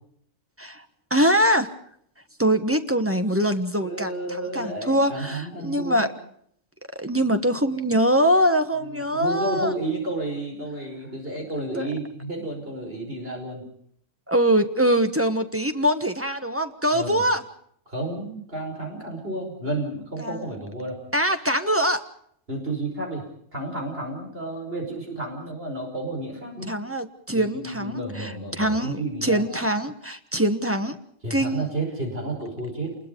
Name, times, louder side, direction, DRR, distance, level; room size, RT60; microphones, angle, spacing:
voice 1, 1.1-1.7 2.4-6.1 6.9-9.7 11.7-11.9 14.3-17.4 20.2-20.5 21.1-22.0 26.7-31.0 31.3-31.7, equal, 10° right, 7 dB, 1.2 m, -23 dB
voice 2, 3.8-6.1 8.8-13.7 16.9-17.2 17.9-21.0 22.5-23.2 23.5-26.7 27.3-29.4 31.2-33.0, right 2 dB, 50° right, 2 dB, 5.6 m, -31 dB
27.5 x 21.0 x 5.3 m, 0.68 s
omnidirectional pair, 1.3 m